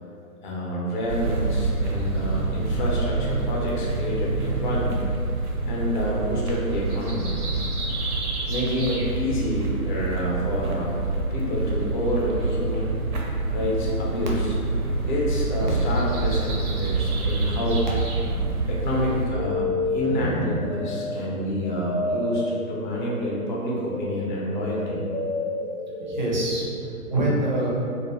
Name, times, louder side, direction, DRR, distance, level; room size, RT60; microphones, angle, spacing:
voice 1, 0.4-5.0 5.7-7.3 8.5-10.9 11.3-12.9 13.5-14.5 15.1-17.8 18.7-25.1, left 1 dB, 35° left, -4 dB, 0.4 m, -28 dB
sound 1, 1.1-19.3, right 3 dB, 85° right, 0.6 m, -27 dB
voice 2, 18.2-18.7 20.0-20.7 26.1-26.7 27.1-27.7, right 1 dB, 35° right, -4 dB, 0.4 m, -26 dB
sound 2, 18.7-27.0, left 2 dB, 90° left, 0.6 m, -31 dB
2.2 x 2.1 x 2.9 m, 2.4 s
figure-of-eight pair, 130°, 43 cm